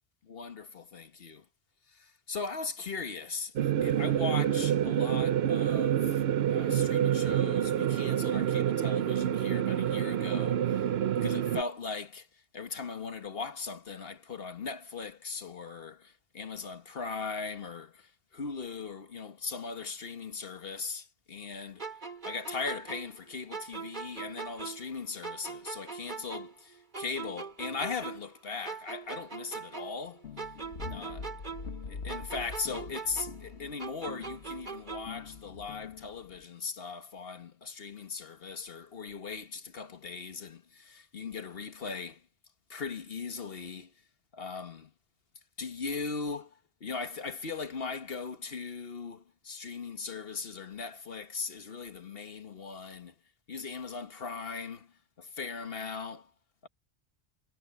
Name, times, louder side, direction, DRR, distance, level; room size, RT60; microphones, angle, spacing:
voice 1, 0.3-1.4 2.0-10.8 11.2-12.3 12.5-21.7 22.2-30.2 30.9-31.2 31.9-42.2 42.7-43.9 44.3-44.9 45.6-46.5 46.8-53.1 53.5-54.9 55.2-56.3 56.6-56.7, left 4 dB, 60° left, 1.6 m, -39 dB
sound 1, 3.6-11.6, right 10 dB, 70° right, 0.9 m, -27 dB
sound 2, 21.8-25.0 25.2-28.4 28.7-31.8 32.1-35.2, right 5 dB, 45° right, 2.3 m, -41 dB
sound 3, 30.2-36.4, left 5 dB, 90° left, 1.6 m, -44 dB
omnidirectional pair, 1.1 m